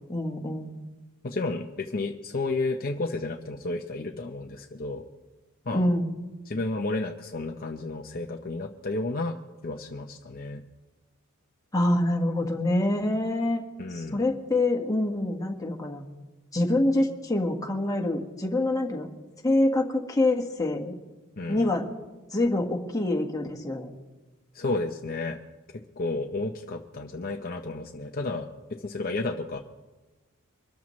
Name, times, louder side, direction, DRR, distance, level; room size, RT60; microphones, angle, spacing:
voice 1, 0.1-0.7 5.7-6.1 11.7-13.6 14.1-16.0 16.5-19.1 19.4-20.9 21.5-21.8 22.3-23.9, left 1 dB, 15° left, 1 dB, 1.6 m, -25 dB
voice 2, 1.2-5.0 5.7-5.9 6.5-9.4 9.6-10.6 13.8-14.2 21.4-21.7 24.5-25.4 25.7-29.6, left 2 dB, 45° left, 3 dB, 0.8 m, -32 dB
24.5 x 13.5 x 3.2 m, 1.2 s
head